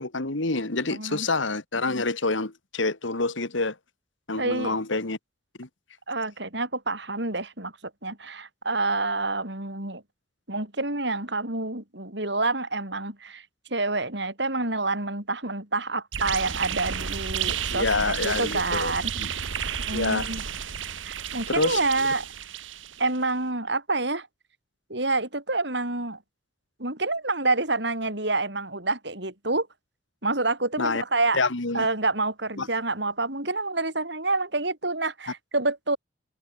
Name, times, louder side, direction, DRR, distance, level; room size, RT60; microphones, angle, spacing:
voice 1, 0.0-3.8 4.3-5.2 5.6-5.7 17.7-19.3 19.9-20.3 21.5-21.8 30.8-31.0 31.3-31.9 32.6-32.7, left 3 dB, 80° left, 2.1 m, -27 dB
voice 2, 0.9-1.3 4.4-4.8 6.1-10.0 10.5-13.5 13.7-19.4 19.9-20.4 21.0-22.3 23.0-24.3 24.9-26.2 26.8-29.7 30.2-31.4 31.7-36.0, right 3 dB, 60° right, 6.0 m, -28 dB
sound 1, 16.1-23.2, right 8 dB, 80° right, 1.4 m, -32 dB
head